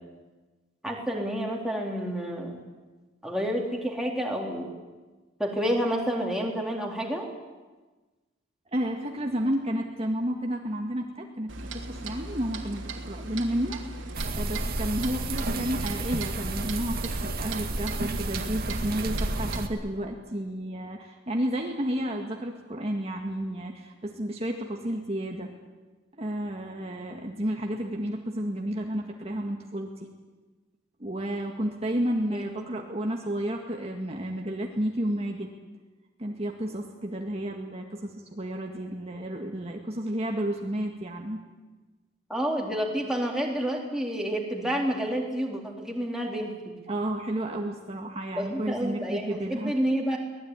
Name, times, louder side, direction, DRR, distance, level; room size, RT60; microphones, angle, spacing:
voice 1, 0.8-2.6 3.2-4.7 5.4-7.3 32.3-32.6 42.3-46.5 48.3-50.2, equal, 5° right, -1 dB, 4.0 m, -29 dB
voice 2, 8.7-13.9 14.3-25.5 26.2-30.1 31.0-35.5 36.2-41.4 46.9-49.8, right 1 dB, 30° right, 1 dB, 2.0 m, -31 dB
Clock, 11.5-19.6, right 2 dB, 75° right, 3.0 m, -38 dB
sound 1, 14.1-19.7, right 2 dB, 50° right, 2.1 m, -31 dB
24.5 x 19.0 x 9.9 m, 1.2 s
head